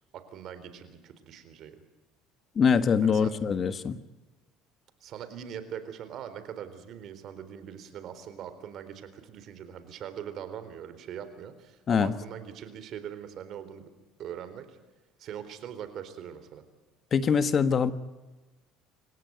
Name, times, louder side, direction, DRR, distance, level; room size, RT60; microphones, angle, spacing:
voice 1, 0.1-1.8 3.0-3.3 5.0-13.9 14.2-14.8 15.2-16.6, right 9 dB, 55° right, 11 dB, 3.9 m, -41 dB
voice 2, 2.5-4.0 11.9-12.1 17.1-17.9, left 6 dB, 40° left, 13 dB, 1.4 m, -23 dB
28.0 x 16.5 x 9.3 m, 1.2 s
supercardioid pair, 105°, 0 cm